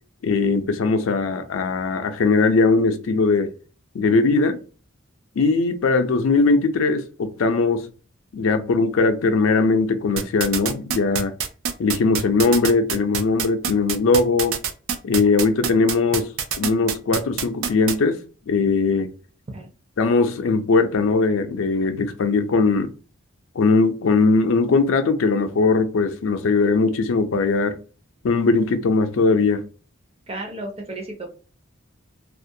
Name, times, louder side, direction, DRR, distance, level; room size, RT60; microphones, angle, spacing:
voice 1, 0.2-3.5 3.9-4.6 5.4-7.9 8.3-11.3 11.8-14.6 15.0-16.3 16.6-18.2 18.5-19.1 20.0-22.9 23.6-27.8 28.2-29.6, left 4 dB, 75° left, 0.4 m, -20 dB
sound 1, 10.2-17.9, right 7 dB, 80° right, 0.4 m, -25 dB
voice 2, 30.3-31.3, right 1 dB, 30° right, 0.6 m, -33 dB
2.4 x 2.1 x 2.6 m
head